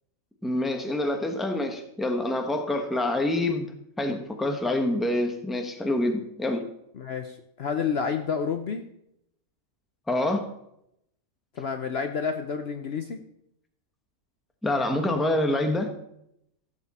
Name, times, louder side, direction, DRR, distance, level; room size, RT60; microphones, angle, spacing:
voice 1, 0.4-3.7 4.0-6.6 10.1-10.5 14.6-15.9, left 1 dB, ahead, 4 dB, 1.0 m, -26 dB
voice 2, 7.0-8.8 11.6-13.2, left 6 dB, 55° left, 6 dB, 0.9 m, -29 dB
15.0 x 7.0 x 4.2 m, 0.78 s
omnidirectional pair, 1.5 m